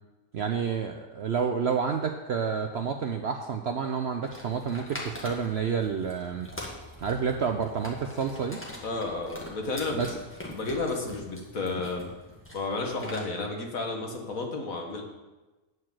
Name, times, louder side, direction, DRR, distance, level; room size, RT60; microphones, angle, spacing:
voice 1, 0.3-6.5 7.0-8.6 9.9-10.1, right 6 dB, 60° right, 5 dB, 0.7 m, -29 dB
sound 1, 4.2-13.2, left 1 dB, 10° left, 1.6 m, -43 dB
voice 2, 8.8-10.0 10.5-12.1 12.5-15.0, left 3 dB, 60° left, 2 dB, 1.9 m, -32 dB
9.5 x 4.8 x 7.5 m, 1.1 s
omnidirectional pair, 1.6 m